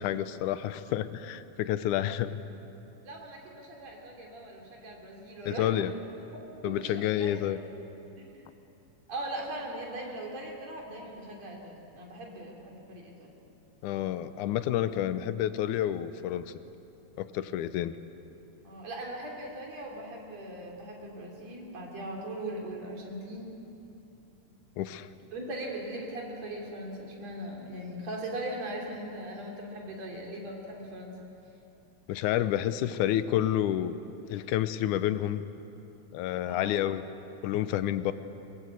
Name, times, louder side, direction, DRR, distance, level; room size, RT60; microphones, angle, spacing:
voice 1, 0.0-2.4 5.5-5.9 6.6-7.6 13.8-16.5 17.2-18.0 24.8-25.1 32.1-34.0 34.3-35.4 36.1-37.0 37.4-38.1, left 12 dB, 80° left, 12 dB, 2.2 m, -29 dB
voice 2, 3.0-5.7 6.3-7.4 8.2-8.3 9.1-13.4 18.6-23.6 25.3-31.2 36.5-36.7, right 1 dB, 55° right, -1 dB, 4.3 m, -40 dB
22.0 x 21.5 x 8.2 m, 2.9 s
omnidirectional pair, 3.7 m